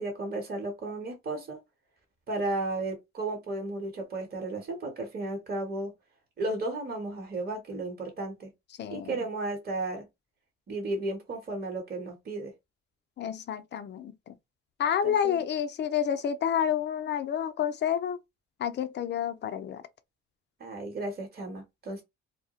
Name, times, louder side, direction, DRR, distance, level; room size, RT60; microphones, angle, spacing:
voice 1, 0.0-1.6 2.3-5.9 6.4-8.5 8.9-10.0 10.7-12.5 15.0-15.4 20.6-22.0, right 2 dB, 30° right, 1.0 m, -34 dB
voice 2, 8.8-9.2 13.2-14.3 14.8-18.2 18.6-19.8, left 9 dB, 35° left, 0.4 m, -29 dB
2.2 x 2.1 x 2.9 m
cardioid pair, 90°, 30 cm